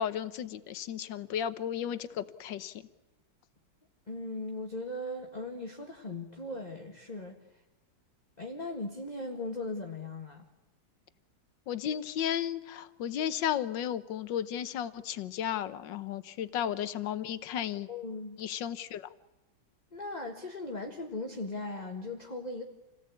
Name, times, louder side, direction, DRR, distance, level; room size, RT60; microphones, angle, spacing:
voice 1, 0.0-2.8 11.7-17.9 18.4-19.1, left 10 dB, 65° left, 13 dB, 1.6 m, -34 dB
voice 2, 4.1-7.4 8.4-10.5 16.6-16.7 17.9-18.4 19.9-22.6, left 2 dB, 20° left, 1 dB, 1.7 m, -38 dB
27.5 x 18.0 x 8.5 m, 1.0 s
omnidirectional pair, 2.3 m